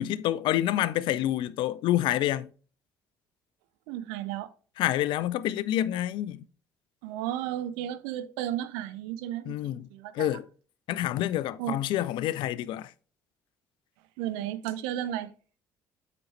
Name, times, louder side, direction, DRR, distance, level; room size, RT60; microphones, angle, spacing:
voice 1, 0.0-2.5 4.8-6.5 9.5-9.9 10.1-10.5 10.9-12.9, left 13 dB, 60° left, 0.4 m, -28 dB
voice 2, 3.9-4.5 7.0-10.3 11.6-11.8 14.2-15.3, right 12 dB, 75° right, 0.5 m, -33 dB
7.8 x 5.2 x 3.1 m
hypercardioid pair, 55°, 9 cm